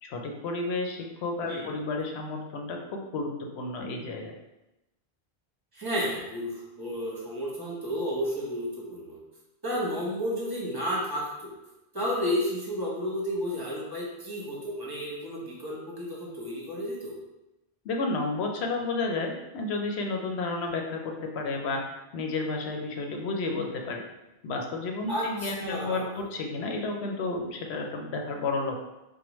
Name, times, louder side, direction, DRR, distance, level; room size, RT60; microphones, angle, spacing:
voice 1, 0.0-4.3 17.8-24.0 24.4-28.9, left 3 dB, 90° left, 2 dB, 0.9 m, -32 dB
voice 2, 5.7-9.2 9.6-11.5 11.9-17.2 25.1-26.2, equal, 25° right, -4 dB, 1.0 m, -32 dB
4.6 x 2.2 x 3.0 m, 0.97 s
omnidirectional pair, 1.1 m